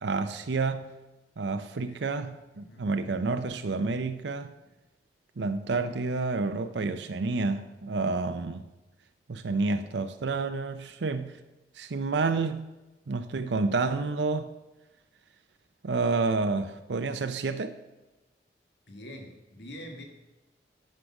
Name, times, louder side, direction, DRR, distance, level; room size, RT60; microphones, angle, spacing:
voice 1, 0.0-0.9 1.4-4.5 5.4-8.6 9.3-11.4 11.8-12.6 13.1-14.5 15.8-17.7, right 3 dB, 85° right, 0.6 m, -29 dB
voice 2, 2.5-2.9 18.9-20.0, equal, 80° left, 1.6 m, -45 dB
9.9 x 6.6 x 5.9 m
head